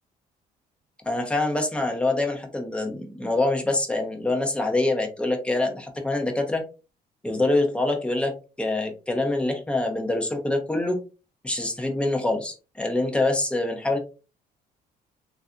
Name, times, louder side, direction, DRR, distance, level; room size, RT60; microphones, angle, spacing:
voice 1, 1.1-6.6 7.2-11.0 11.4-14.0, left 2 dB, 5° left, 3 dB, 0.8 m, -25 dB
3.2 x 2.6 x 2.4 m, 0.32 s
cardioid pair, 110°, 17 cm